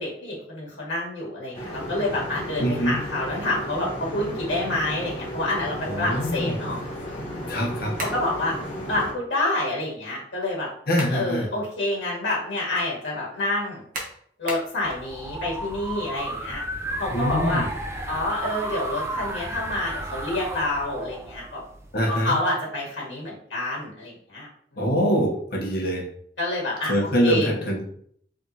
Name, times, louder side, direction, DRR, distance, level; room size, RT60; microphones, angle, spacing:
voice 1, 0.0-6.8 8.0-8.5 8.9-10.7 11.1-13.8 14.4-16.6 17.0-17.7 18.1-21.6 22.1-24.5 26.4-27.5, left 2 dB, 85° left, -4 dB, 1.5 m, -28 dB
sound 1, 1.5-9.1, equal, 35° left, 1.7 m, -34 dB
voice 2, 2.6-3.0 5.9-6.5 7.5-8.0 10.9-11.5 17.1-17.7 21.9-22.4 24.8-26.1 26.8-27.8, equal, 60° left, -1 dB, 1.2 m, -24 dB
sound 2, 8.0-8.3 10.6-11.3 11.7-11.8 13.9-14.8, right 1 dB, 50° right, 1.1 m, -34 dB
sound 3, 14.8-22.0, right 1 dB, 15° right, 0.4 m, -33 dB
3.5 x 2.9 x 4.0 m, 0.63 s
head